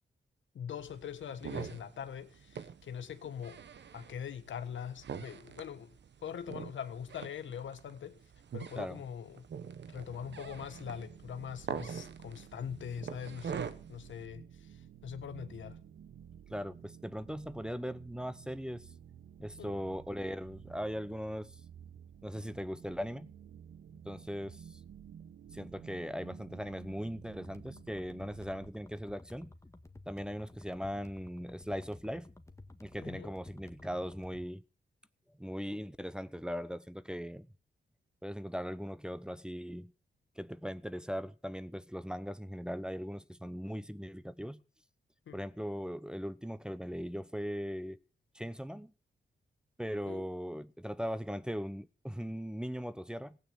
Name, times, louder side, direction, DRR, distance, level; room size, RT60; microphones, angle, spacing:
voice 1, 0.5-3.6 3.9-5.9 6.2-8.2 8.5-9.5 9.9-15.8 19.6-19.8 33.0-33.4 45.3-45.4 50.0-50.3, left 8 dB, 80° left, 1.4 m, -42 dB
sound 1, 0.8-14.2, right 7 dB, 65° right, 1.2 m, -44 dB
sound 2, 9.9-28.7, right 8 dB, 90° right, 1.2 m, -53 dB
voice 2, 16.5-18.9 19.4-21.6 22.2-23.3 24.0-24.8 25.5-29.5 30.1-32.3 32.8-34.6 35.4-37.5 38.2-39.9 40.4-44.6 45.3-48.0 48.3-48.9 49.8-53.4, equal, 5° right, 0.8 m, -39 dB
sound 3, 27.4-34.5, left 2 dB, 15° left, 1.7 m, -54 dB
16.0 x 9.2 x 7.3 m
cardioid pair, 65°, 19 cm